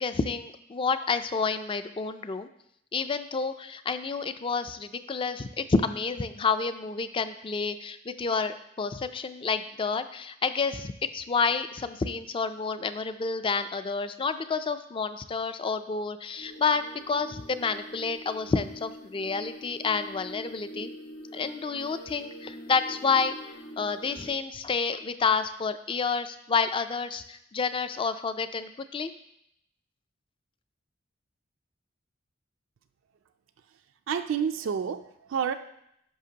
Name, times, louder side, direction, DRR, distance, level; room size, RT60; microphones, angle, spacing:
voice 1, 0.0-2.5 2.9-20.9 21.3-29.1, left 5 dB, 25° left, 11 dB, 0.3 m, -29 dB
sound 1, 16.4-24.3, equal, 45° left, 1.5 m, -44 dB
voice 2, 34.1-35.5, right 7 dB, 80° right, 8 dB, 0.4 m, -29 dB
10.0 x 5.9 x 2.8 m, 0.76 s
head